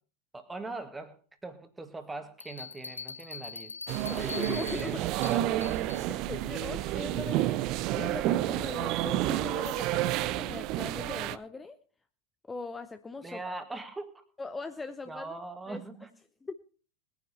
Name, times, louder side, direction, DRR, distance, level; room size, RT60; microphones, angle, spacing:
voice 1, 0.3-3.7 4.1-5.7 13.2-14.2 15.1-16.1, right 3 dB, 10° right, 8 dB, 2.1 m, -42 dB
sound 1, 2.4-6.1, left 4 dB, 80° left, 0.6 m, -42 dB
sound 2, 3.9-11.4, right 14 dB, 45° right, 0.7 m, -30 dB
voice 2, 4.1-5.0 6.1-11.8 12.5-13.4 14.4-15.3 15.7-15.8 16.4-16.6, left 3 dB, 15° left, 9 dB, 0.8 m, -40 dB
21.0 x 10.0 x 4.2 m, 0.38 s
figure-of-eight pair, 85°, 0 cm